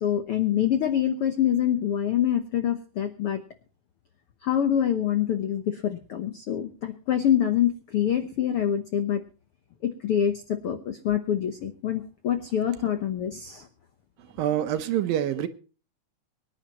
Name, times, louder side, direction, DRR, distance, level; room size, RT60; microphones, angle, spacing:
voice 1, 0.0-3.4 4.4-9.2 9.8-13.7, left 10 dB, 80° left, 1.2 m, -25 dB
voice 2, 14.4-15.5, right 11 dB, 75° right, 2.7 m, -26 dB
24.0 x 10.5 x 3.0 m
omnidirectional pair, 4.1 m